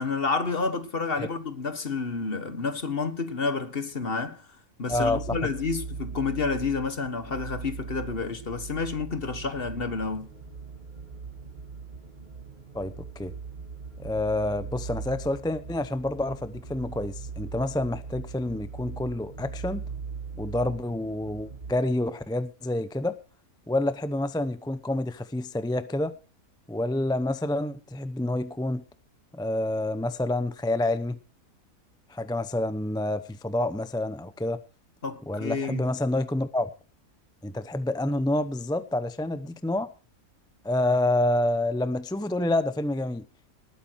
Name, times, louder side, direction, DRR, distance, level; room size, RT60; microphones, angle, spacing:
voice 1, 0.0-4.4 4.8-10.3 35.0-35.9, left 4 dB, 40° left, 1.6 m, -30 dB
voice 2, 4.9-5.2 12.7-13.3 14.0-19.8 20.4-23.1 23.7-26.1 26.7-28.8 29.3-31.2 32.1-34.6 35.3-36.7 37.4-39.9 40.6-43.2, left 1 dB, 5° left, 0.4 m, -28 dB
sound 1, 4.9-21.7, right 5 dB, 30° right, 2.2 m, -40 dB
19.5 x 9.2 x 4.6 m
omnidirectional pair, 1.5 m